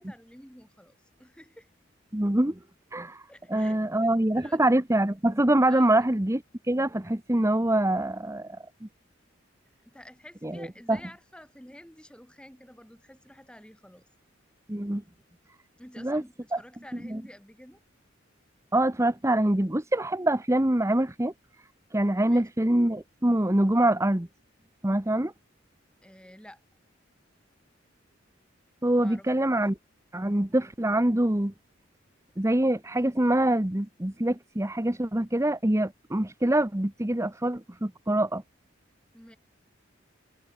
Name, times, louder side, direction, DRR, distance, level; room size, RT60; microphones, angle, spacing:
voice 1, 0.0-1.7 3.3-4.6 5.7-5.9 9.8-14.1 15.8-17.8 22.3-22.5 26.0-26.6 29.0-29.7 39.1-39.4, equal, 5° left, 6.5 m, -50 dB
voice 2, 2.1-2.6 2.9-3.2 3.5-8.5 8.8-8.9 10.4-11.0 14.7-15.0 16.0-16.2 16.5-16.6 17.1-17.2 18.7-21.3 21.9-24.3 24.8-25.3 28.8-29.8 30.1-31.5 32.4-38.4, right 1 dB, 15° right, 1.1 m, -25 dB
head